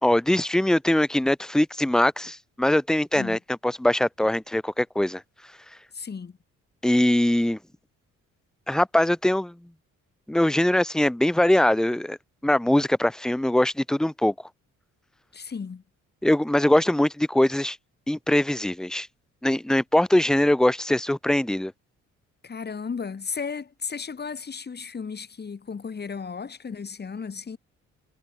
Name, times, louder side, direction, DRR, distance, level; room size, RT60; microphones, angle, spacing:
voice 1, 0.0-5.2 6.8-7.6 8.7-9.5 10.3-12.2 12.4-14.3 16.2-17.8 18.1-19.1 19.4-21.7, left 1 dB, ahead, 0.5 m, -22 dB
voice 2, 5.9-6.4 15.3-15.8 22.4-27.6, left 5 dB, 35° left, 2.4 m, -34 dB
cardioid pair, 90°, 30 cm